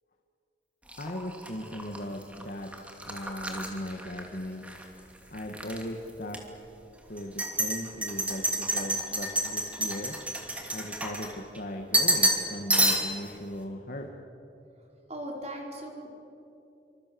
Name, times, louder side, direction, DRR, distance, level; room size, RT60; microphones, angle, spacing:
sound 1, 0.9-4.8 5.2-5.8 6.3-6.4 7.2-11.6 11.9-12.4 12.7-13.3, right 1 dB, 10° right, 2.8 m, -29 dB
voice 1, 1.0-2.7 3.1-4.7 5.3-6.4 7.1-10.2 10.7-14.1, left 1 dB, 50° left, 2 dB, 2.0 m, -38 dB
voice 2, 15.1-16.1, right 1 dB, 35° right, 0 dB, 4.6 m, -38 dB
27.5 x 25.5 x 7.2 m, 2.8 s
head